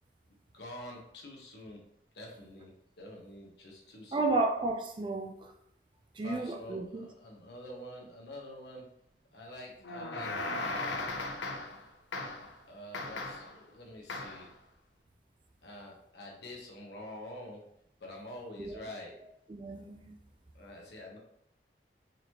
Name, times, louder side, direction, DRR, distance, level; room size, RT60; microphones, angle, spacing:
voice 1, 0.5-1.8 2.1-2.7 3.0-4.4 6.2-8.9 9.3-11.1 12.7-14.5 15.6-17.6 18.0-19.2 20.5-21.2, left 1 dB, 70° left, -1 dB, 1.0 m, -47 dB
voice 2, 4.1-5.5 6.2-7.1 18.6-18.8 19.5-20.1, right 2 dB, 25° right, 4 dB, 0.4 m, -32 dB
sound 1, 9.8-11.8 12.1-12.5 12.9-13.6 14.1-14.5, left 2 dB, 85° left, 0.6 m, -37 dB
3.9 x 3.1 x 2.9 m, 0.73 s
head